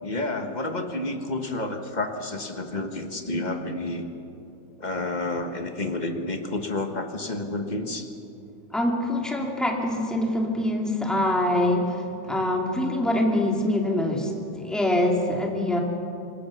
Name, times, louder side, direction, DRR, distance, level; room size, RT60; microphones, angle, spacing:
voice 1, 0.0-4.1 4.8-8.1, left 2 dB, 30° left, 5 dB, 1.5 m, -30 dB
voice 2, 8.7-15.8, left 1 dB, ahead, 0 dB, 2.5 m, -24 dB
26.0 x 20.0 x 6.3 m, 2.7 s
omnidirectional pair, 1.8 m